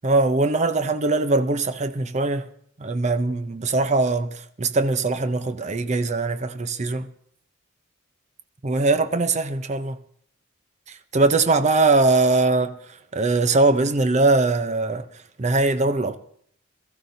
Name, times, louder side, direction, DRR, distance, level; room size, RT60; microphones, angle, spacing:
voice 1, 0.0-2.5 2.8-7.1 8.6-10.0 10.9-12.8 13.1-15.1 15.4-16.2, right 3 dB, 35° right, 0.6 m, -21 dB
23.0 x 14.0 x 2.7 m
head